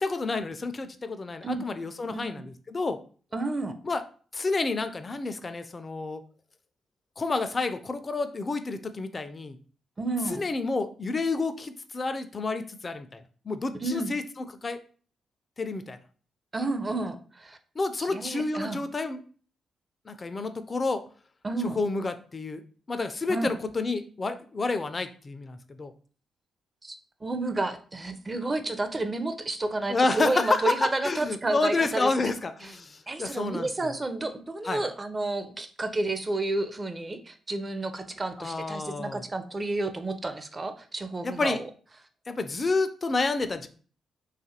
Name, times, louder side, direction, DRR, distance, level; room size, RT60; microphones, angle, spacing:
voice 1, 0.0-3.0 3.8-4.0 4.3-6.2 7.2-9.6 10.3-14.8 15.6-16.0 17.8-19.2 20.1-21.0 21.7-22.6 22.9-25.9 29.9-33.7 34.6-34.8 38.4-39.2 41.2-41.6 42.3-43.7, left 3 dB, 40° left, 10 dB, 0.3 m, -29 dB
voice 2, 2.1-2.5 3.3-3.8 10.0-10.4 13.7-14.1 16.5-17.6 18.0-18.8 21.4-21.8 23.3-23.5 26.8-27.0 27.2-32.3 32.6-32.7 33.1-41.6, right 2 dB, 30° right, 9 dB, 0.5 m, -31 dB
2.7 x 2.4 x 2.7 m, 0.42 s
hypercardioid pair, 45°, 0 cm